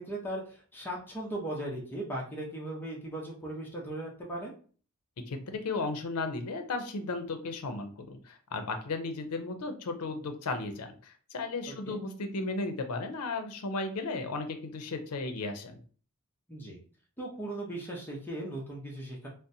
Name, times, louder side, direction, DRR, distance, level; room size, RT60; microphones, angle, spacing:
voice 1, 0.0-4.5 11.8-12.0 16.5-16.8 17.2-19.3, right 1 dB, 10° left, -3 dB, 0.7 m, -38 dB
voice 2, 5.3-15.8, left 3 dB, 85° left, 6 dB, 0.5 m, -35 dB
3.9 x 2.0 x 2.7 m, 0.42 s
head